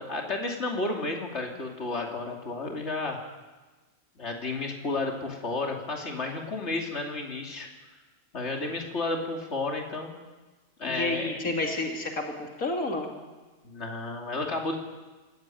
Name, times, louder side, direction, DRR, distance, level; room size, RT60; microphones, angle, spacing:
voice 1, 0.0-3.2 4.2-7.7 8.3-10.1 10.8-11.3 13.6-14.8, left 3 dB, 55° left, 0 dB, 3.2 m, -32 dB
voice 2, 10.8-13.1, left 2 dB, 90° left, 1 dB, 3.0 m, -30 dB
25.5 x 15.0 x 9.3 m, 1.3 s
omnidirectional pair, 1.4 m